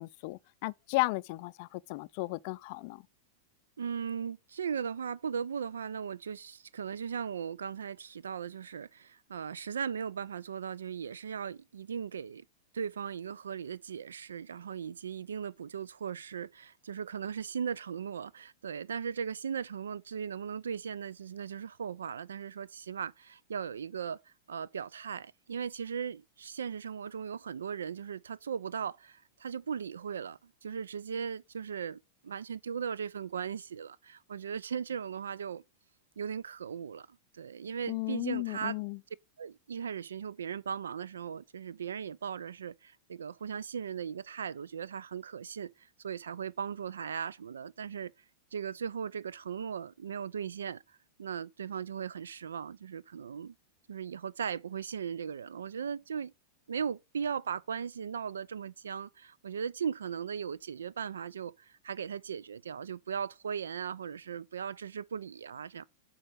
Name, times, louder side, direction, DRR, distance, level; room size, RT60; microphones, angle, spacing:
voice 1, 0.0-3.0 37.9-39.0, left 23 dB, 55° left, 0.4 m, -34 dB
voice 2, 3.8-12.4 12.7-35.6 36.2-38.8 39.4-48.1 48.5-50.8 51.2-53.5 53.9-56.3 56.7-65.8, right 7 dB, 85° right, 0.4 m, -38 dB
7.6 x 4.4 x 6.6 m
hypercardioid pair, 105°, 0 cm